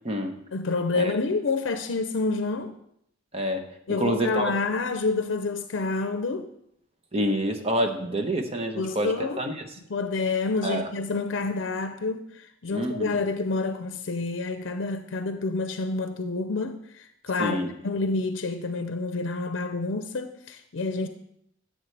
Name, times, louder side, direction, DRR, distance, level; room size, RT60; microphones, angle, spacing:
voice 1, 0.5-2.7 3.9-6.5 8.8-9.4 9.9-17.6 17.8-21.1, left 3 dB, 75° left, 0.6 m, -28 dB
voice 2, 3.3-3.6 4.0-4.5 7.1-9.7 10.6-10.9 12.7-13.1 17.4-17.7, right 1 dB, 30° right, 1.0 m, -27 dB
10.5 x 7.7 x 3.3 m
head